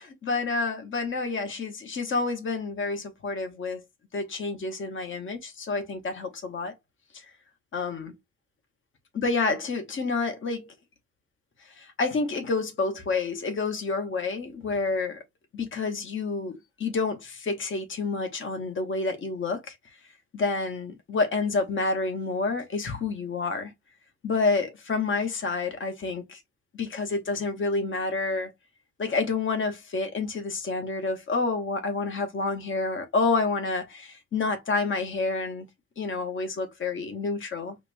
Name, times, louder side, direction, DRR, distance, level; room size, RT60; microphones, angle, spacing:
voice 1, 0.0-3.8 4.1-6.7 7.7-8.1 9.1-10.7 11.8-15.2 15.5-19.7 20.3-23.7 24.2-26.4 26.7-28.5 29.0-35.7 36.0-37.8, left 3 dB, 40° left, 0.9 m, -29 dB
5.0 x 2.2 x 2.5 m
cardioid pair, 130°, 30 cm